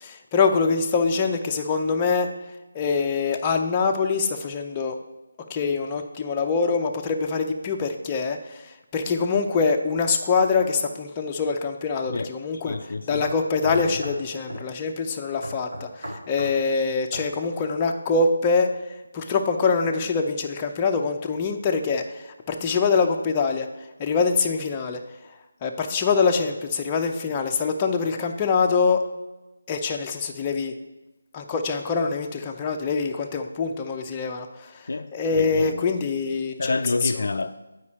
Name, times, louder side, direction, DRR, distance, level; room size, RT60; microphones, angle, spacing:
voice 1, 0.0-2.3 2.7-5.0 5.5-12.8 13.1-18.7 19.1-23.7 24.0-25.0 25.6-29.0 29.7-30.7 31.3-34.8 35.1-36.6 37.0-37.1, left 4 dB, 20° left, 0.6 m, -24 dB
sound 1, 12.0-12.2 12.7-12.8 13.2-14.2 14.5-14.7 15.4-16.6 17.1-17.3, right 1 dB, 75° right, 2.4 m, -36 dB
voice 2, 12.6-13.2 13.7-14.0 34.9-35.9 36.6-37.5, left 3 dB, 65° left, 0.3 m, -29 dB
8.3 x 5.0 x 4.3 m
figure-of-eight pair, 160°, 0 cm